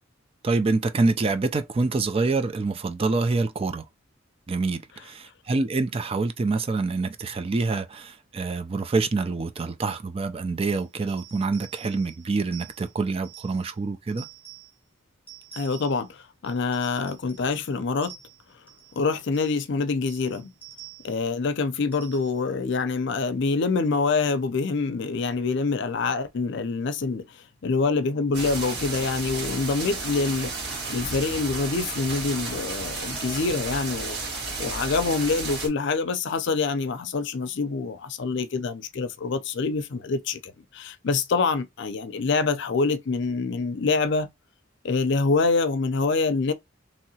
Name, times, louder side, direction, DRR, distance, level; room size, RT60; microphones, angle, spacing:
voice 1, 0.4-3.8 4.5-14.3, right 3 dB, 30° right, 0.4 m, -26 dB
sound 1, 11.1-13.7 14.1-14.8 15.3-16.1 16.4-17.7 18.0-19.0 19.3-19.6 20.1-21.2 21.9-22.5, right 10 dB, 10° left, 0.8 m, -48 dB
voice 2, 15.6-18.1 19.0-20.5 21.0-30.5 30.9-34.2 34.6-44.3 44.8-46.5, left 4 dB, 60° left, 0.5 m, -26 dB
sound 2, 28.3-35.7, right 3 dB, 60° right, 1.5 m, -33 dB
3.0 x 2.8 x 2.7 m
head